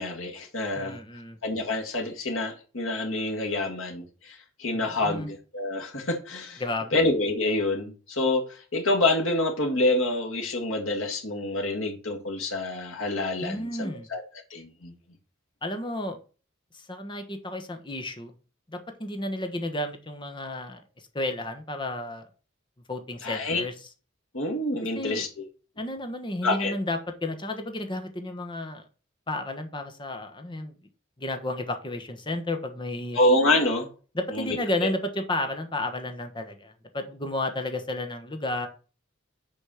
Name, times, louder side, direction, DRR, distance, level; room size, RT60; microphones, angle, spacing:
voice 1, 0.0-1.0 1.4-6.6 6.9-14.2 14.5-14.9 23.2-23.6 24.3-25.4 26.4-26.7 33.1-33.9 34.3-34.9, left 2 dB, 85° left, 1.9 m, -27 dB
voice 2, 0.8-1.4 4.7-5.3 6.6-7.0 13.4-14.1 15.6-16.2 16.7-18.3 18.7-20.8 21.1-22.3 22.9-23.7 24.9-25.3 25.8-28.8 29.3-30.8 31.2-33.2 34.1-38.7, left 1 dB, 25° left, 1.1 m, -32 dB
6.6 x 4.2 x 6.3 m
head